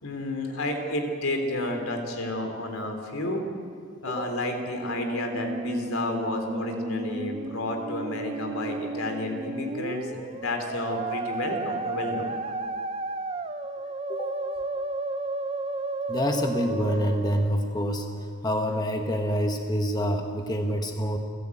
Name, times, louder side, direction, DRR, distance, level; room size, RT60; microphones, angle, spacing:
voice 1, 0.0-3.4 4.0-12.3, left 1 dB, 85° left, 4 dB, 3.3 m, -31 dB
Musical instrument, 4.6-17.6, right 2 dB, 30° right, 0.7 m, -33 dB
voice 2, 16.1-21.2, equal, 20° left, 3 dB, 1.3 m, -27 dB
29.0 x 12.0 x 8.5 m, 2.3 s
head